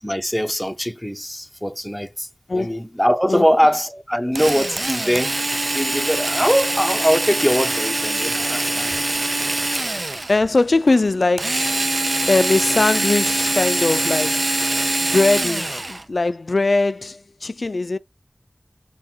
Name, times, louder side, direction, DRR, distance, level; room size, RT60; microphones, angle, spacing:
voice 1, 0.0-9.3 15.0-15.1, equal, 5° left, 0.8 m, -22 dB
voice 2, 2.5-2.8 3.3-3.5 10.3-11.7 12.3-14.5 15.0-18.0, left 3 dB, 75° left, 0.3 m, -20 dB
Drill, 4.3-10.4 11.4-16.0, right 2 dB, 50° right, 0.4 m, -23 dB
5.5 x 2.3 x 2.9 m
wide cardioid pair, 40°, 0 cm